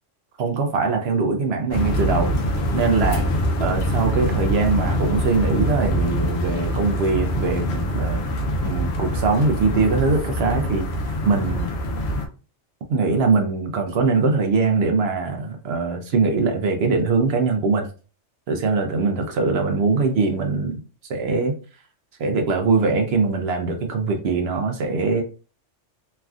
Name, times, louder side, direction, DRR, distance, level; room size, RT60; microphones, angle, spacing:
voice 1, 0.4-2.3 2.7-3.3 3.6-8.2 8.6-11.7 12.9-17.9 18.5-20.8 21.1-21.5 22.2-25.2, right 4 dB, 65° right, 0.7 m, -22 dB
sound 1, 1.7-12.3, equal, 65° left, 0.8 m, -24 dB
3.2 x 2.4 x 2.3 m
omnidirectional pair, 1.3 m